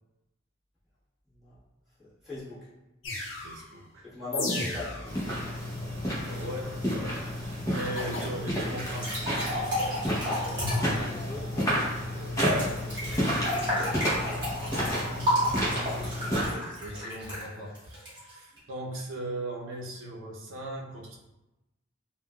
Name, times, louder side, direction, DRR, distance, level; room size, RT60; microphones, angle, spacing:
voice 1, 2.0-2.7 4.0-5.2 10.9-11.9, left 3 dB, ahead, -13 dB, 1.3 m, -40 dB
sound 1, 3.0-3.6 4.3-5.2 8.0-8.3, left 2 dB, 70° left, 0.6 m, -33 dB
voice 2, 3.4-4.1 4.5-4.9 6.3-9.8 12.5-13.3 14.7-15.4 16.2-21.2, right 1 dB, 80° right, -2 dB, 0.6 m, -39 dB
sound 2, 5.0-16.5, equal, 15° left, 0.7 m, -31 dB
sound 3, 8.8-11.0 12.4-18.6, equal, 20° right, 1.4 m, -31 dB
3.6 x 2.2 x 2.2 m, 0.98 s
head